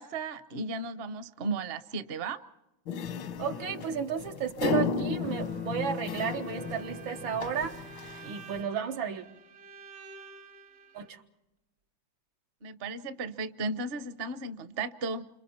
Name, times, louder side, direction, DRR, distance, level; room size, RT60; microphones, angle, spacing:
voice 1, 0.0-2.4 12.6-15.3, right 3 dB, 50° right, 12 dB, 0.7 m, -35 dB
sound 1, 2.9-8.6, left 4 dB, 85° left, 1.8 m, -34 dB
voice 2, 3.4-7.8 8.2-9.2 10.9-11.2, right 7 dB, 90° right, 5 dB, 2.1 m, -33 dB
sound 2, 5.2-8.8, left 3 dB, 15° left, 0.3 m, -43 dB
Bowed string instrument, 6.4-11.1, right 4 dB, 70° right, 1.9 m, -50 dB
28.5 x 26.5 x 4.3 m, 0.91 s
omnidirectional pair, 2.1 m